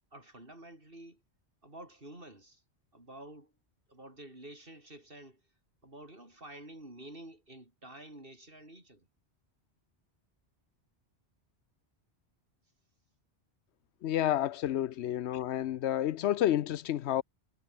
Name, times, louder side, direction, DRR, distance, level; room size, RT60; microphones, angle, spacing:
voice 1, 0.1-1.2 1.6-2.6 2.9-3.5 3.9-5.4 5.8-9.1, right 1 dB, 55° right, 6.5 m, -50 dB
voice 2, 14.0-17.2, left 12 dB, 80° left, 0.9 m, -30 dB
omnidirectional pair, 1.1 m